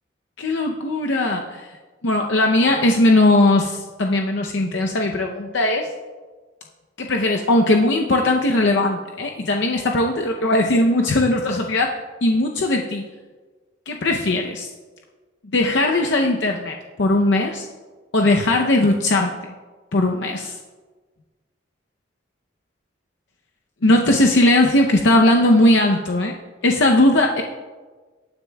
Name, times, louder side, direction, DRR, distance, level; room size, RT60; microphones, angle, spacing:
voice 1, 0.4-1.7 2.0-5.9 7.0-13.1 13.9-14.7 15.5-17.7 18.1-19.6 19.9-20.6 23.8-26.3 26.6-27.4, left 1 dB, 65° left, 2 dB, 0.6 m, -19 dB
18.5 x 9.6 x 2.3 m, 1.4 s
head